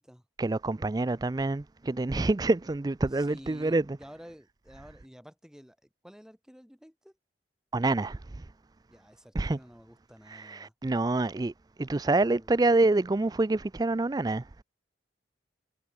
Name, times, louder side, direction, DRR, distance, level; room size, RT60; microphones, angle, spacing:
voice 1, 0.4-3.8 7.7-8.4 9.4-9.6 10.3-11.5 11.8-14.4, right 2 dB, 20° right, 0.4 m, -27 dB
voice 2, 3.1-7.2 8.9-10.7 12.1-12.6, equal, 5° right, 7.3 m, -51 dB
head